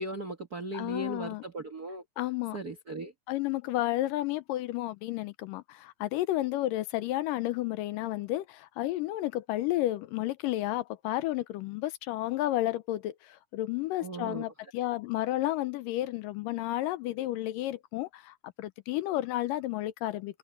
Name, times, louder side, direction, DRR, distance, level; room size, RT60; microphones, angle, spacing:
voice 1, 0.0-2.0 2.5-3.1 14.0-14.4, right 2 dB, 75° right, 0.8 m, -37 dB
voice 2, 0.7-1.4 2.2-2.6 3.3-20.4, left 15 dB, 80° left, 2.2 m, -32 dB
omnidirectional pair, 4.2 m